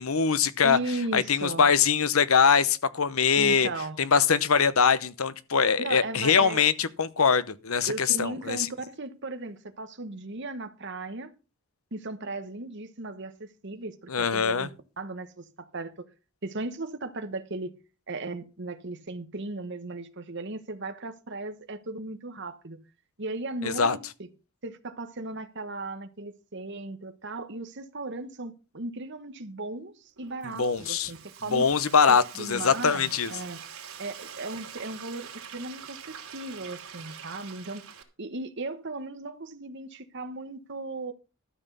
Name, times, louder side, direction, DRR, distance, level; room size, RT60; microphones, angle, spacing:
voice 1, 0.0-0.8 1.1-3.7 4.0-8.7 14.1-14.7 23.6-24.0 30.4-31.1 31.5-33.3, left 6 dB, 80° left, 0.9 m, -23 dB
voice 2, 0.6-1.7 3.3-4.0 5.8-6.6 7.9-11.3 11.9-14.7 15.0-16.1 16.4-17.7 18.1-22.8 23.2-24.3 24.6-31.6 32.1-33.6 34.0-37.8 38.2-41.1, right 2 dB, 55° right, 1.3 m, -36 dB
Frying (food), 30.2-38.0, right 7 dB, 90° right, 2.9 m, -45 dB
13.0 x 6.2 x 6.8 m
head